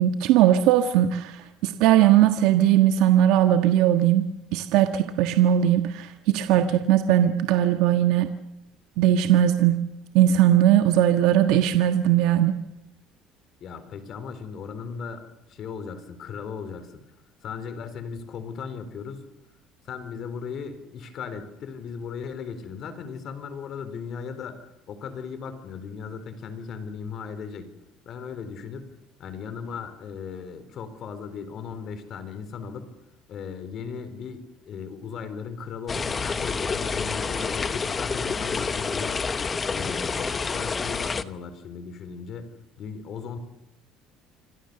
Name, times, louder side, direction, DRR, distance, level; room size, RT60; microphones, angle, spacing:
voice 1, 0.0-8.3 9.0-9.8 10.1-12.6, right 11 dB, 75° right, 7 dB, 1.5 m, -19 dB
voice 2, 13.6-15.2 15.5-17.0 17.4-19.2 19.8-24.6 24.9-27.7 28.1-28.9 29.2-32.9 33.3-39.3 39.7-43.4, left 6 dB, 45° left, 10 dB, 4.2 m, -37 dB
sound 1, 35.9-41.2, left 5 dB, 20° left, 1.0 m, -28 dB
27.5 x 24.5 x 7.0 m, 0.86 s
cardioid pair, 140°, 0 cm